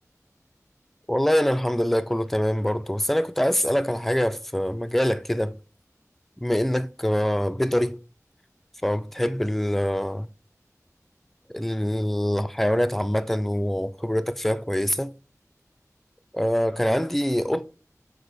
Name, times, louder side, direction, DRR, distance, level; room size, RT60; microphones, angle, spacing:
voice 1, 1.1-5.5 6.4-8.0 8.8-10.3 11.5-15.1 16.3-17.7, equal, 5° left, 0.3 m, -24 dB
6.0 x 2.7 x 2.6 m
wide cardioid pair, 45°, 6 cm